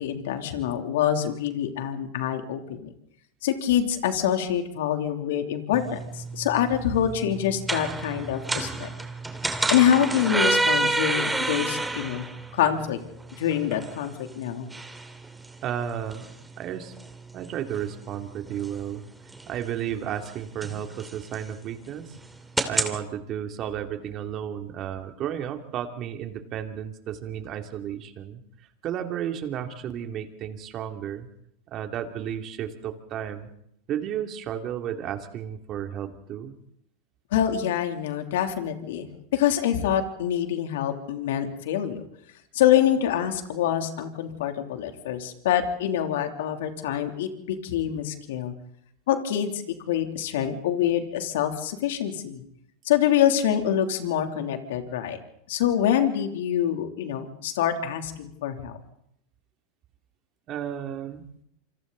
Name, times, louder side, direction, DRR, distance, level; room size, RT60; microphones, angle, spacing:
voice 1, 0.0-2.9 3.4-8.9 9.7-12.2 12.5-13.0 13.3-14.7 37.3-42.0 42.5-48.5 49.1-52.4 52.8-55.2 55.5-58.8, left 10 dB, 75° left, 5 dB, 3.2 m, -25 dB
sound 1, 5.7-23.0, right 2 dB, 10° right, 2.8 m, -31 dB
voice 2, 15.6-16.3 16.6-16.9 17.3-19.0 19.5-22.2 22.7-28.4 28.8-31.3 31.7-33.5 33.9-36.5 60.5-61.2, right 9 dB, 40° right, 5 dB, 2.9 m, -33 dB
27.5 x 27.0 x 4.1 m, 0.74 s
hypercardioid pair, 105°, 0 cm